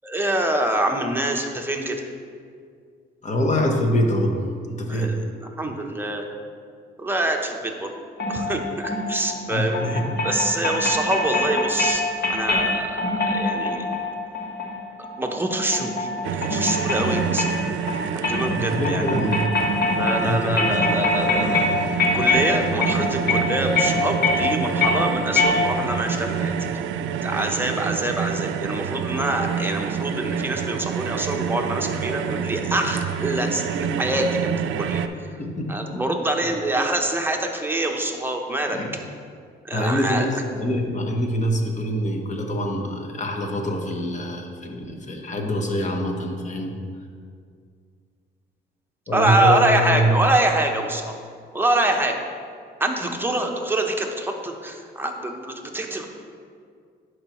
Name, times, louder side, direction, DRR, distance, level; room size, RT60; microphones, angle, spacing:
voice 1, 0.0-2.1 4.9-5.2 5.6-6.3 7.0-7.9 8.3-12.0 12.3-13.8 15.2-17.5 17.9-19.1 19.9-21.6 22.1-26.5 27.2-35.0 35.3-35.4 35.7-38.8 39.6-40.2 49.1-51.1 51.5-52.2 52.8-56.1, right 1 dB, 10° right, 2 dB, 0.8 m, -25 dB
voice 2, 3.2-4.4 4.7-5.2 9.5-10.2 10.6-10.8 18.5-19.4 20.2-20.7 35.4-36.1 38.7-38.9 39.7-46.7 49.1-50.2, equal, 35° left, 2 dB, 1.1 m, -25 dB
sound 1, 8.2-26.1, left 2 dB, 55° left, 1.3 m, -25 dB
sound 2, 16.2-35.1, right 7 dB, 75° right, 0.4 m, -27 dB
11.0 x 4.7 x 3.0 m, 2.2 s
cardioid pair, 90°, 20 cm